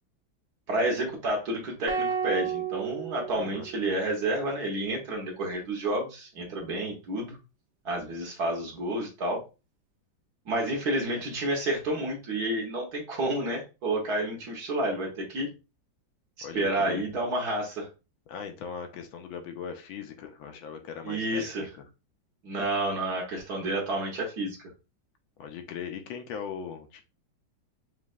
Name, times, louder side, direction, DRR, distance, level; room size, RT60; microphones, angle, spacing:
voice 1, 0.7-7.4 7.8-9.4 10.5-15.5 16.5-17.9 21.0-21.7 22.4-24.6, right 1 dB, 55° right, 0 dB, 1.5 m, -30 dB
sound 1, 1.9-4.2, right 7 dB, 75° right, 1.6 m, -32 dB
voice 2, 3.3-3.7 16.4-17.0 18.3-21.8 25.4-27.0, left 7 dB, 80° left, 6 dB, 1.5 m, -39 dB
5.2 x 3.2 x 2.3 m, 0.29 s
omnidirectional pair, 2.2 m